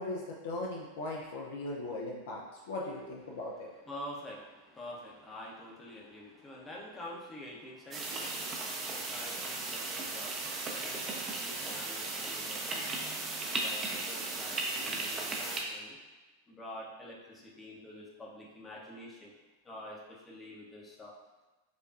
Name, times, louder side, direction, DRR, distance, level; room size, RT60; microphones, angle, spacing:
voice 1, 0.0-2.4 2.7-3.7, left 2 dB, 55° left, -2 dB, 0.4 m, -38 dB
voice 2, 3.3-16.0 16.5-19.4 19.6-21.1, left 1 dB, 15° left, -3 dB, 0.7 m, -47 dB
sound 1, 7.9-15.6, right 3 dB, 25° right, 0.5 m, -36 dB
5.0 x 2.3 x 2.5 m, 1.1 s
figure-of-eight pair, 90°, 0 cm